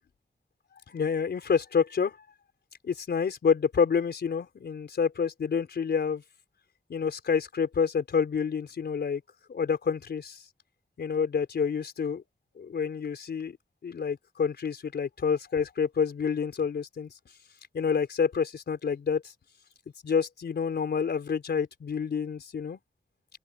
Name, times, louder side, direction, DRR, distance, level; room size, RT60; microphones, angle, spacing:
voice 1, 0.9-2.2 2.8-6.2 6.9-9.2 9.5-10.4 11.0-12.2 12.6-13.6 13.8-17.1 17.7-19.3 20.0-22.8, left 6 dB, 90° left, 4.3 m, -28 dB
open air
wide cardioid pair, 75°, 17 cm